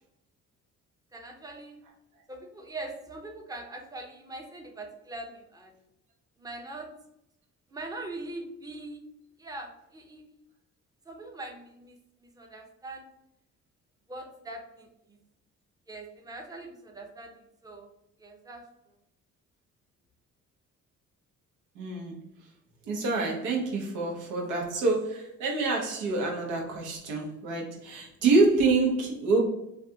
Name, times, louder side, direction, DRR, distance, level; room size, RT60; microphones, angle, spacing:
voice 1, 1.1-1.8 2.3-5.8 6.4-6.9 7.7-9.0 9.4-10.2 11.0-13.1 14.1-15.2 15.9-17.9 18.2-18.7, right 2 dB, 10° right, 2 dB, 0.6 m, -42 dB
voice 2, 21.7-22.2 22.8-29.4, right 3 dB, 90° right, 0 dB, 0.8 m, -26 dB
3.3 x 2.4 x 2.7 m, 0.83 s
cardioid pair, 90°, 30 cm